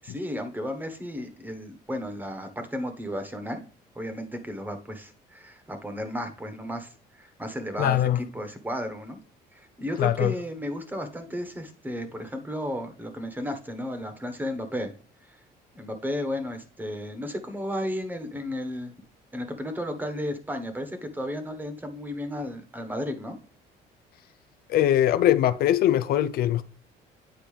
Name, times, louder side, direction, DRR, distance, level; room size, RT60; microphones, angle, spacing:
voice 1, 0.0-3.6 3.9-8.0 8.3-9.2 9.5-14.9 15.3-15.4 15.7-18.9 19.3-23.4, equal, 10° right, 1.2 m, -33 dB
voice 2, 7.8-8.2 10.0-10.4 24.7-26.6, left 12 dB, 65° left, 0.4 m, -22 dB
8.9 x 4.4 x 3.3 m
cardioid pair, 110°, 17 cm